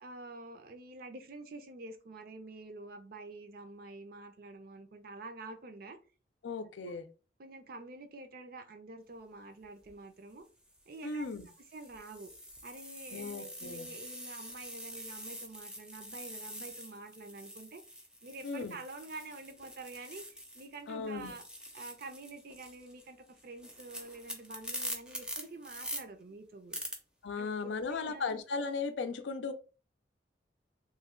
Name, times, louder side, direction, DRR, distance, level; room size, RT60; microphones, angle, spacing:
voice 1, 0.0-6.0 6.8-6.9 7.4-10.5 10.9-11.3 11.7-12.3 12.6-17.8 18.2-21.4 21.7-26.8 27.4-28.3, right 2 dB, 55° right, 0.5 m, -48 dB
voice 2, 6.4-7.1 11.0-11.5 13.1-13.9 18.4-18.8 20.9-21.3 27.2-29.5, left 4 dB, 80° left, 0.4 m, -36 dB
sound 1, 9.6-9.9 10.6-20.8 21.1-26.0 26.7-27.0, equal, 5° right, 0.5 m, -45 dB
3.1 x 2.2 x 3.6 m
head